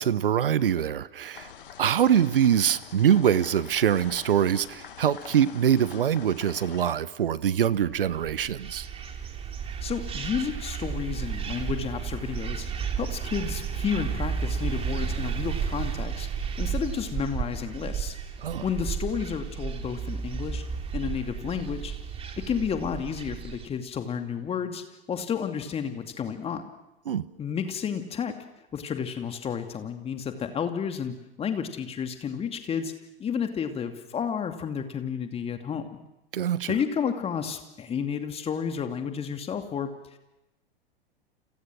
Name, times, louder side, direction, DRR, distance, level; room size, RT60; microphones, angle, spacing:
voice 1, 0.0-1.5 1.8-8.9 18.4-18.6 27.1-27.2 36.3-36.7, right 9 dB, 65° right, 17 dB, 1.2 m, -24 dB
sound 1, 1.3-6.9, left 9 dB, 65° left, 1.9 m, -45 dB
sound 2, 8.0-23.7, right 7 dB, 20° right, 2.9 m, -33 dB
voice 2, 9.8-12.7 12.9-18.2 18.6-20.6 20.9-21.9 22.4-26.6 27.4-28.3 28.7-32.9 33.2-36.0 36.7-40.2, left 7 dB, 20° left, 6 dB, 2.5 m, -31 dB
30.0 x 27.5 x 6.2 m, 0.95 s
figure-of-eight pair, 95°, 30 cm